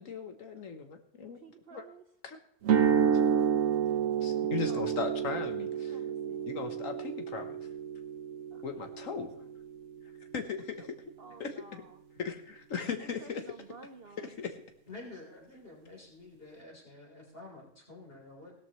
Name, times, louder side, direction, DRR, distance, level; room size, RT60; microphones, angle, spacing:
voice 1, 0.0-1.4 1.7-1.8 2.2-2.4 4.2-6.0 6.5-7.6 8.6-9.3 10.3-10.8 11.4-11.8 12.2-13.4 14.2-14.5, left 5 dB, 65° left, 6 dB, 1.4 m, -37 dB
voice 2, 1.2-2.0 4.4-5.4 5.7-6.4 8.5-9.5 10.8-10.9 11.2-12.0 13.0-14.4, right 4 dB, 50° right, 9 dB, 0.8 m, -52 dB
sound 1, 2.6-10.7, right 8 dB, 70° right, 1.3 m, -30 dB
voice 3, 14.9-18.5, left 2 dB, 40° left, -1 dB, 4.0 m, -49 dB
17.0 x 13.0 x 3.1 m, 0.75 s
omnidirectional pair, 1.5 m